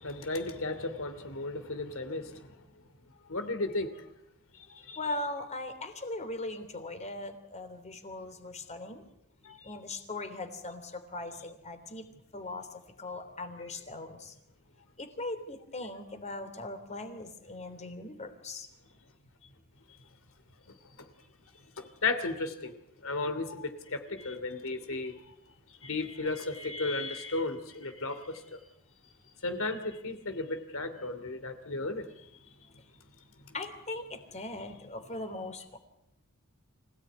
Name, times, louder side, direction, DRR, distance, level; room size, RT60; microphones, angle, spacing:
voice 1, 0.0-2.6 3.3-4.1 4.7-5.0 9.4-9.7 13.6-13.7 21.8-22.7 23.0-25.3 25.8-28.6 29.4-32.1 33.5-33.6, left 3 dB, 65° left, 2.8 m, -34 dB
voice 2, 5.0-9.0 9.6-12.0 12.3-14.3 15.0-18.7 33.5-35.8, left 2 dB, 30° left, 3.2 m, -39 dB
25.5 x 17.5 x 9.5 m
head